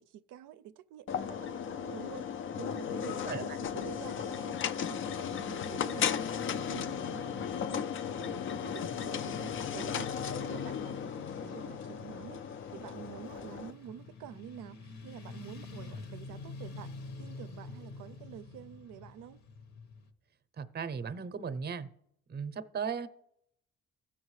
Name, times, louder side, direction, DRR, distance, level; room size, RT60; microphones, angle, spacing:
voice 1, 0.0-4.6 4.9-6.1 6.5-7.9 8.2-10.1 10.3-16.9 17.2-19.4, right 10 dB, 85° right, 0.5 m, -48 dB
sound 1, 1.1-13.7, left 8 dB, 45° left, 0.4 m, -36 dB
Motorcycle / Traffic noise roadway noise, 3.6-20.1, left 4 dB, 60° left, 1.1 m, -47 dB
voice 2, 20.6-21.9 22.3-23.1, right 6 dB, 35° right, 0.6 m, -36 dB
15.5 x 6.1 x 3.2 m
cardioid pair, 90°, 30 cm